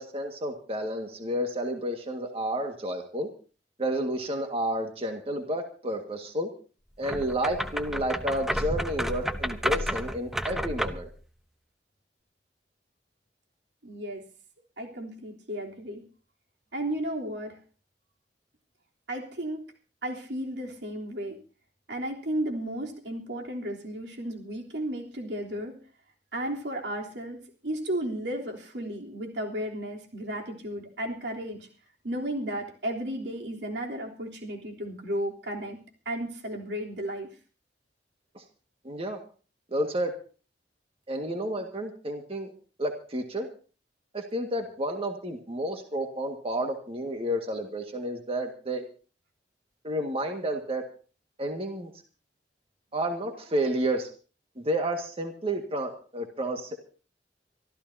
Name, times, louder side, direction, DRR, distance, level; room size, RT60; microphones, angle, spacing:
voice 1, 0.0-3.3 3.8-6.5 7.0-11.1 38.3-38.4 38.8-39.2 39.7-40.2 41.1-42.5 42.8-43.5 44.1-48.9 49.8-50.8 51.4-51.9 52.9-54.1 54.6-57.0, right 1 dB, 35° right, 3 dB, 1.8 m, -31 dB
sound 1, 7.0-11.1, equal, ahead, 0.9 m, -31 dB
voice 2, 13.8-14.2 14.8-16.0 16.7-17.6 19.1-19.6 20.0-21.4 21.9-25.8 26.3-31.7 32.0-35.8 36.0-37.3, right 1 dB, 85° right, 0 dB, 3.5 m, -34 dB
25.0 x 14.0 x 2.8 m, 0.39 s
head